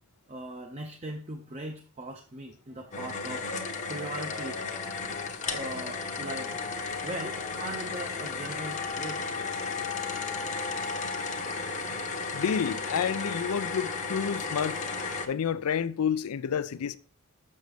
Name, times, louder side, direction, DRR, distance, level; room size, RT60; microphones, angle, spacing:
voice 1, 0.3-3.5 3.8-4.6 5.5-6.6 7.0-9.3, right 1 dB, 30° right, 0.6 m, -39 dB
sound 1, 2.9-15.3, left 4 dB, 35° left, 0.8 m, -34 dB
voice 2, 12.3-14.8 15.3-17.0, left 7 dB, 80° left, 0.4 m, -29 dB
6.5 x 6.4 x 3.3 m
head